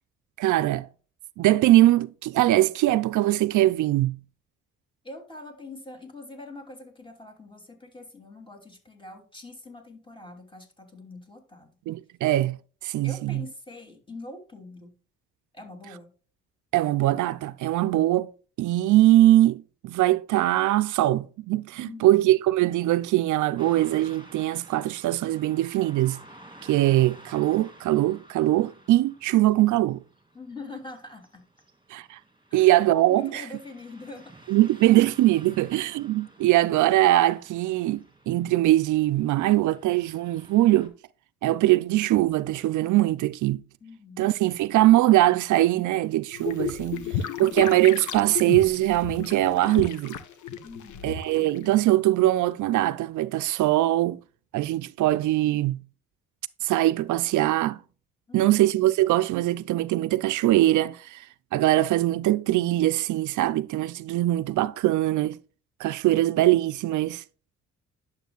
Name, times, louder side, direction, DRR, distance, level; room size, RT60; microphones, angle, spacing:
voice 1, 0.4-0.9 1.4-4.2 11.9-12.6 12.8-13.4 16.7-18.3 18.6-26.2 26.6-30.0 31.9-32.2 32.5-33.4 34.5-40.9 41.4-43.6 44.2-47.0 47.4-50.2 51.0-54.2 54.5-55.8 56.6-57.8 58.3-61.3 61.5-65.4 65.8-67.2, right 15 dB, 75° right, 0.5 m, -22 dB
voice 2, 5.0-11.8 13.0-15.0 15.5-16.1 21.8-22.2 30.3-31.4 32.5-34.3 43.8-44.3 46.9-47.6 50.6-51.1 58.3-58.6, left 2 dB, 15° left, 3.0 m, -44 dB
Car passing by / Traffic noise roadway noise, 23.6-40.9, right 1 dB, 15° right, 2.6 m, -52 dB
sound 1, 46.3-51.7, left 8 dB, 75° left, 1.2 m, -33 dB
11.0 x 7.4 x 2.4 m
cardioid pair, 90°, 30 cm